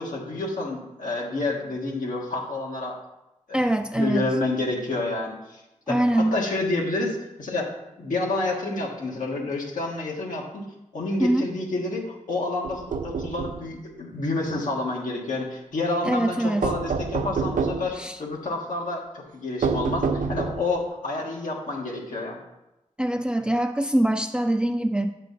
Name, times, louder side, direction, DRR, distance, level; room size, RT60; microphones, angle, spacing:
voice 1, 0.0-3.0 3.5-3.6 4.0-5.6 5.9-7.7 8.0-10.7 10.9-22.4, left 2 dB, 85° left, -2 dB, 1.5 m, -29 dB
voice 2, 3.5-4.3 5.9-6.4 11.2-11.5 16.0-16.7 17.9-18.2 23.0-25.1, right 1 dB, 5° right, 5 dB, 0.5 m, -23 dB
sound 1, 12.6-13.6 16.6-17.9 19.6-20.8, right 5 dB, 85° right, 0.5 m, -27 dB
7.4 x 6.5 x 4.0 m, 0.93 s
cardioid pair, 55°, 13 cm